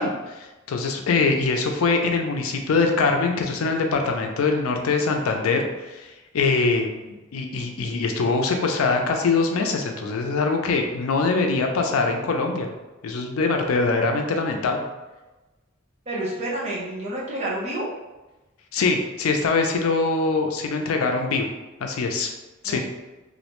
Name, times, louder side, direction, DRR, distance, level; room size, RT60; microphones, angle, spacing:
voice 1, 0.0-12.7 13.0-14.8 18.7-21.5 21.8-22.3 22.6-22.8, left 4 dB, 80° left, 4 dB, 0.4 m, -23 dB
voice 2, 16.1-17.9 22.6-22.8, right 1 dB, 35° right, -6 dB, 0.7 m, -29 dB
2.4 x 2.1 x 2.9 m, 1.1 s
head